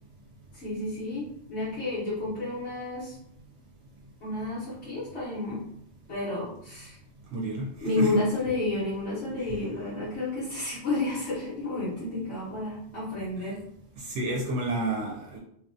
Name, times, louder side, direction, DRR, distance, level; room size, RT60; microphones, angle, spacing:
voice 1, 0.5-3.2 4.2-5.6 6.1-7.0 7.8-13.6, left 2 dB, 75° left, -10 dB, 1.4 m, -31 dB
voice 2, 7.3-7.7 8.0-8.2 9.4-9.6 13.4-13.5 14.0-15.4, right 2 dB, 80° right, -1 dB, 0.9 m, -30 dB
2.9 x 2.1 x 2.6 m, 0.71 s
omnidirectional pair, 1.2 m